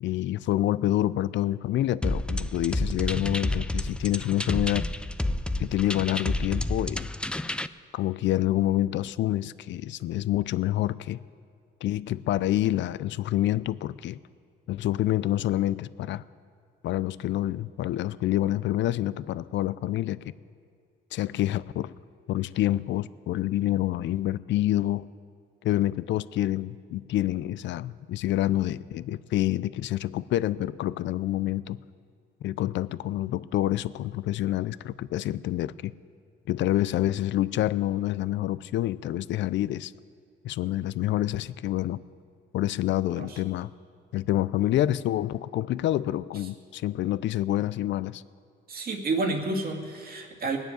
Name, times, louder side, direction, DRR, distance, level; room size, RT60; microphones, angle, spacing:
voice 1, 0.0-4.9 5.6-7.1 7.9-11.2 11.8-14.2 14.7-16.2 16.8-20.2 21.1-21.9 22.3-25.1 25.6-31.8 32.4-35.9 36.5-39.9 40.4-42.0 42.5-43.7 44.1-48.2, left 13 dB, 70° left, 17 dB, 0.4 m, -27 dB
sound 1, 2.0-7.7, left 1 dB, 5° left, 0.4 m, -30 dB
voice 2, 48.7-50.6, right 3 dB, 50° right, 2 dB, 2.2 m, -30 dB
20.0 x 7.1 x 9.2 m, 2.3 s
cardioid pair, 90°, 20 cm